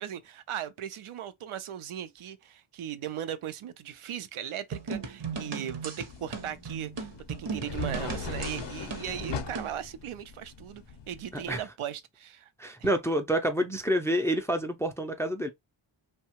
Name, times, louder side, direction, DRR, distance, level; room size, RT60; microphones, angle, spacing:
voice 1, 0.0-12.5 12.8-12.9, right 10 dB, 80° right, 0.5 m, -38 dB
sound 1, 4.7-9.8, right 5 dB, 55° right, 0.8 m, -37 dB
sound 2, 6.1-11.6, left 6 dB, 55° left, 0.6 m, -40 dB
voice 2, 12.6-15.5, equal, 5° left, 0.3 m, -28 dB
2.7 x 2.2 x 2.8 m
wide cardioid pair, 80°, 49 cm